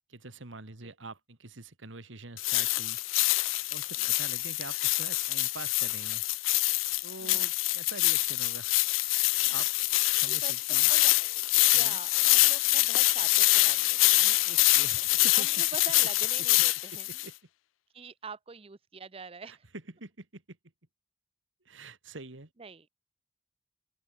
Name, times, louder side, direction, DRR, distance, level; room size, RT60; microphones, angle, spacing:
voice 1, 0.1-3.0 3.7-6.2 7.0-8.8 9.1-9.7 10.1-10.9 11.7-12.0 14.4-15.5 16.9-17.3 19.5-19.6 20.0-20.6 21.7-22.5, right 3 dB, 70° right, 2.1 m, -45 dB
sound 1, 2.4-17.3, left 20 dB, 80° left, 0.4 m, -25 dB
voice 2, 10.3-11.1 11.7-14.5 15.3-17.3 17.9-19.7 22.6-22.9, right 4 dB, 30° right, 0.6 m, -45 dB
head